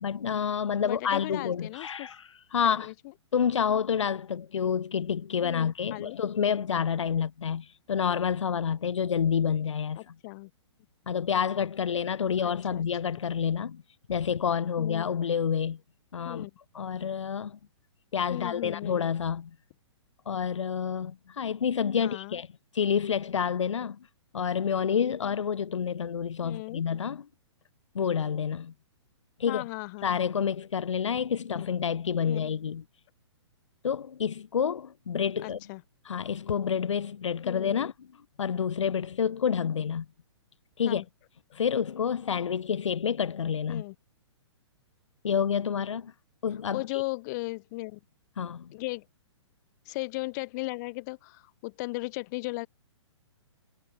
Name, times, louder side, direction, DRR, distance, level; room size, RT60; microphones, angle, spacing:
voice 1, 0.0-2.9 3.3-10.0 11.1-13.8 14.1-15.8 16.1-16.5 16.7-17.6 18.1-19.5 20.3-22.5 22.7-24.0 24.3-27.2 27.9-28.7 29.4-29.6 30.0-32.8 33.8-35.6 36.0-37.9 38.4-40.1 40.8-41.0 41.5-43.8 45.2-46.1 46.4-47.0 48.4-48.7, left 7 dB, 90° left, 0.5 m, -28 dB
voice 2, 0.8-2.1 2.6-2.9 5.4-6.2 10.0-10.5 12.4-12.8 13.2-13.3 14.8-15.1 16.2-16.5 18.3-19.0 22.0-22.4 26.4-26.8 29.5-30.3 31.5-31.7 32.2-32.4 35.4-35.8 37.4-37.8 40.9-41.1 43.7-43.9 46.7-48.0 48.7-49.0 49.8-52.7, left 24 dB, 40° left, 1.4 m, -36 dB
hypercardioid pair, 135°, 15 cm